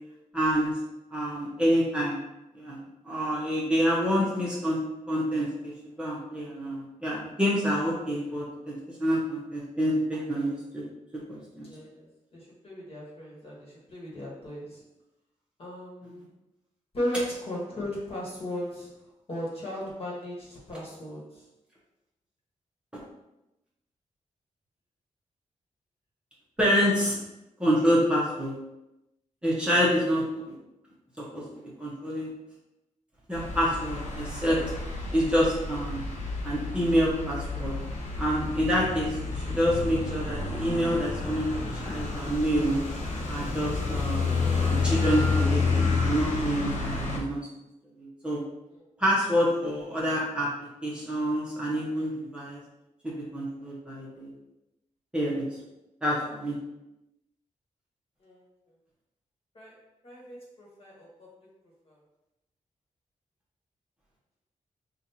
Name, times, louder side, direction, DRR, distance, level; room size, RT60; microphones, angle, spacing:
voice 1, 0.3-0.7 1.1-2.2 2.6-2.8 3.0-4.8 5.1-10.8 11.3-11.7 16.0-16.1 26.6-27.2 27.6-28.5 29.4-30.2 31.3-31.4 31.8-32.3 33.3-34.6 35.1-36.0 36.4-37.7 38.2-42.8 43.3-44.3 44.5-47.4 48.0-48.4 49.0-52.6 53.0-54.3 55.1-55.4 56.0-56.6, equal, 10° right, -7 dB, 1.0 m, -27 dB
voice 2, 11.6-12.1 12.3-14.8 15.6-16.3 16.9-18.9 19.3-21.2 58.2-58.4 59.5-59.7 60.0-61.3, equal, 50° left, -4 dB, 1.4 m, -36 dB
sound 1, 33.3-47.2, left 4 dB, 70° left, 0.9 m, -30 dB
5.6 x 2.5 x 2.8 m, 0.93 s
wide cardioid pair, 125°, 13 cm